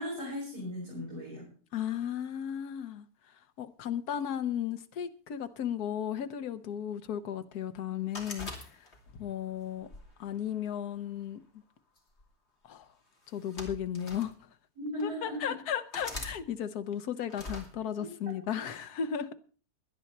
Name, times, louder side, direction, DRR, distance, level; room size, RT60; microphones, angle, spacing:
voice 1, 0.0-1.5 14.8-15.6, left 1 dB, 80° right, 7.2 m, -37 dB
voice 2, 1.7-3.1 3.6-8.5 9.1-9.9 10.2-11.4 12.7-12.9 13.3-14.3 15.0-19.3, left 9 dB, 80° left, 1.4 m, -35 dB
sound 1, 8.1-9.2 9.8-11.0 12.0-12.2 13.2-14.3 15.0-15.1 15.9-16.4 17.3-17.7, left 2 dB, 45° left, 3.0 m, -42 dB
17.5 x 11.0 x 4.2 m
omnidirectional pair, 1.6 m